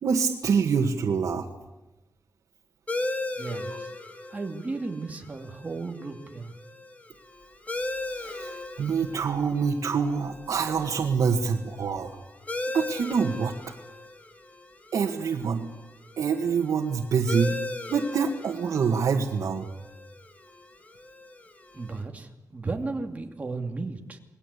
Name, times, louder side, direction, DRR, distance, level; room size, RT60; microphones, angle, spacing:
voice 1, 0.0-1.5 8.1-12.2 12.7-13.5 14.9-15.7 16.2-17.6 17.9-19.7, right 6 dB, 85° right, 1 dB, 1.9 m, -26 dB
sound 1, 2.9-22.0, left 2 dB, 25° left, 2.3 m, -38 dB
voice 2, 3.3-3.9 4.3-6.5 21.7-24.2, right 3 dB, 25° right, 3 dB, 2.7 m, -34 dB
28.0 x 20.5 x 8.4 m, 0.99 s
wide cardioid pair, 155°, 6 cm